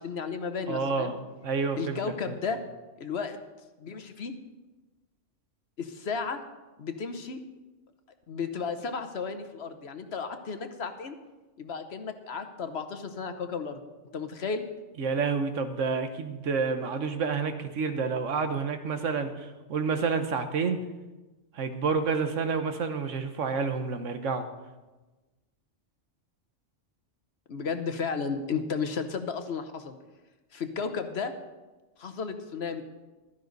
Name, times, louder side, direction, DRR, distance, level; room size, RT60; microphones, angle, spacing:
voice 1, 0.0-1.1 1.8-2.6 3.0-3.4 3.8-4.3 5.8-6.4 6.8-7.4 8.3-11.1 11.6-13.8 14.1-14.6 27.5-30.0 30.5-31.3 32.0-32.8, left 5 dB, 60° left, 8 dB, 1.2 m, -33 dB
voice 2, 0.7-2.0 2.3-2.4 15.0-20.8 21.5-24.5, right 5 dB, 85° right, 8 dB, 1.4 m, -29 dB
15.0 x 12.5 x 4.0 m, 1.2 s
omnidirectional pair, 1.3 m